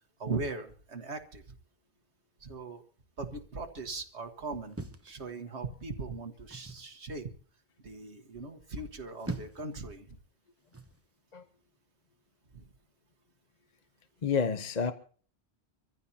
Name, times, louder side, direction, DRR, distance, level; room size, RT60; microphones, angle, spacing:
voice 1, 0.2-1.4 2.4-2.8 3.2-4.8 5.0-7.3 7.8-10.2 12.5-12.6, right 3 dB, 80° right, 5 dB, 1.8 m, -39 dB
sound 1, 4.7-5.8 6.5-6.9 8.9-9.8 10.7-11.0, right 2 dB, 15° right, 1.0 m, -42 dB
voice 2, 14.2-14.9, left 6 dB, 40° left, 9 dB, 0.9 m, -29 dB
25.5 x 15.0 x 2.8 m, 0.43 s
omnidirectional pair, 1.1 m